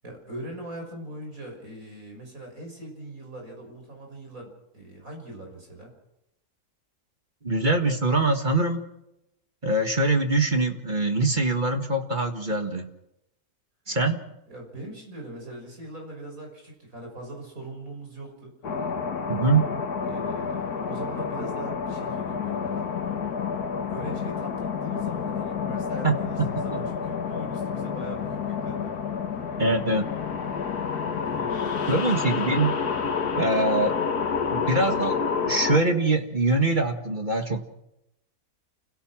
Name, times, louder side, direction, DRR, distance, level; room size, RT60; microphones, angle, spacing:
voice 1, 0.0-5.9 14.5-18.9 20.0-22.9 23.3-23.6 23.9-28.9 30.4-30.7 31.2-32.5, right 1 dB, 60° right, 2 dB, 6.8 m, -41 dB
voice 2, 7.4-8.9 9.6-12.9 13.9-14.2 19.3-19.7 26.0-26.8 29.6-30.1 31.9-32.7 33.4-34.0 34.5-37.6, right 2 dB, 30° right, 5 dB, 1.8 m, -24 dB
sound 1, 18.6-35.8, left 6 dB, 90° left, 2.0 m, -29 dB
29.5 x 17.0 x 6.2 m, 0.85 s
omnidirectional pair, 1.6 m